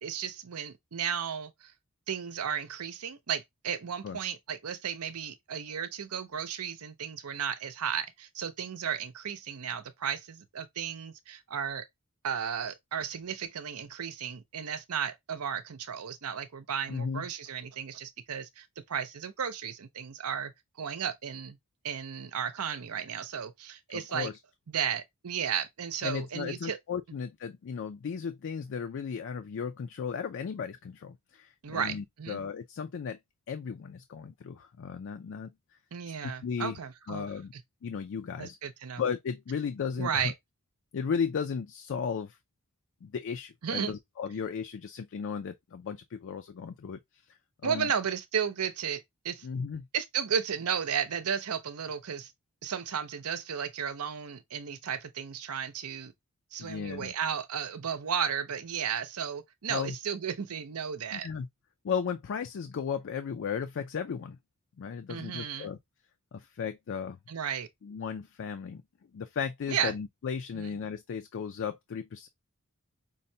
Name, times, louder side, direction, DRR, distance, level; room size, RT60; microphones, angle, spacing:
voice 1, 0.0-1.7 2.1-11.8 12.2-20.5 20.8-21.6 21.8-24.3 24.7-26.8 31.6-32.4 35.9-37.6 38.4-39.0 40.0-40.3 43.6-43.9 47.6-49.5 49.9-52.3 52.6-56.1 56.5-61.3 65.1-65.7 67.3-67.7 69.7-69.9 70.5-70.7, right 7 dB, 70° right, 0.6 m, -34 dB
voice 2, 16.9-17.3 23.9-24.3 26.0-33.2 33.5-35.5 36.2-36.8 37.1-37.5 37.8-38.6 39.0-40.3 40.9-42.4 43.0-47.0 47.3-47.9 49.4-49.9 56.6-57.1 59.7-60.0 61.1-61.5 61.8-64.4 64.8-65.8 66.3-67.2 67.8-68.8 69.1-72.3, left 6 dB, 55° left, 0.4 m, -35 dB
5.3 x 2.2 x 2.7 m
head